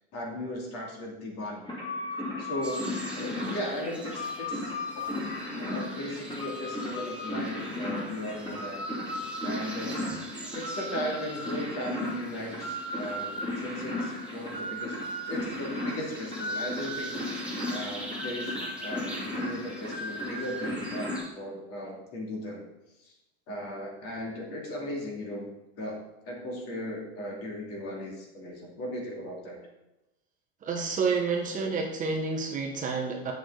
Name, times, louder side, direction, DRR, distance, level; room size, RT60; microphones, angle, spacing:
voice 1, 0.1-1.7 2.4-2.8 3.1-5.1 5.6-8.8 9.4-10.0 10.5-15.0 15.3-17.2 17.7-22.7 23.0-23.1 23.5-25.5 25.8-29.6, left 1 dB, 45° left, -1 dB, 2.6 m, -37 dB
sound 1, 1.7-21.2, left 1 dB, 15° left, 2.6 m, -35 dB
sound 2, 2.6-21.3, right 1 dB, 5° right, 1.3 m, -46 dB
voice 2, 30.6-33.3, right 4 dB, 25° right, 0 dB, 1.1 m, -29 dB
8.9 x 6.4 x 3.9 m, 0.97 s
supercardioid pair, 145°, 33 cm